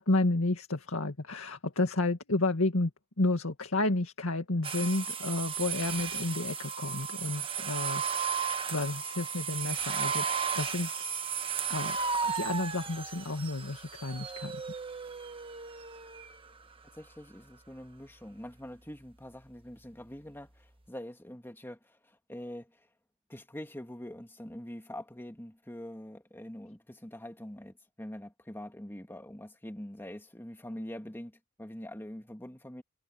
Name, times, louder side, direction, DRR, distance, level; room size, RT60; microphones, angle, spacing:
voice 1, 0.0-2.9 3.2-10.3 10.5-10.9 11.7-12.0 12.2-14.6, left 2 dB, 85° left, 2.0 m, -31 dB
sound 1, 4.6-16.4, right 6 dB, 25° right, 1.3 m, -34 dB
voice 2, 16.9-22.9 23.3-32.8, left 1 dB, 10° left, 1.9 m, -44 dB
head